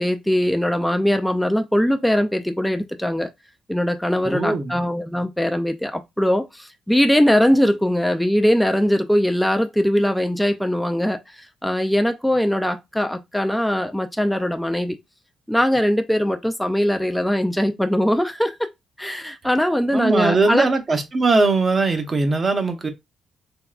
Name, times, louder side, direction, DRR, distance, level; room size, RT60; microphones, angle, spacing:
voice 1, 0.0-3.3 3.7-15.0 15.5-18.6 19.0-20.7, equal, 5° left, 0.3 m, -21 dB
voice 2, 4.2-4.8 19.9-22.9, right 3 dB, 35° right, 0.7 m, -20 dB
3.5 x 2.2 x 2.4 m
cardioid pair, 90°, 0 cm